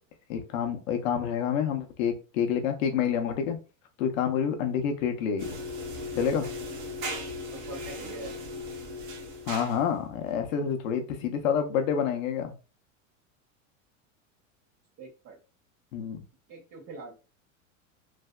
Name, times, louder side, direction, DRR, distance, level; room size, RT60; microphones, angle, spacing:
voice 1, 0.3-3.6 4.0-5.6 6.1-6.5 9.5-12.5 15.9-16.2, left 7 dB, 75° left, 5 dB, 0.8 m, -28 dB
sound 1, 5.4-10.0, left 1 dB, 65° right, 1.2 m, -37 dB
voice 2, 7.5-8.3 15.0-15.4 16.5-17.1, right 3 dB, 40° right, 0 dB, 1.5 m, -43 dB
3.3 x 2.6 x 2.2 m, 0.32 s
supercardioid pair, 115°, 40 cm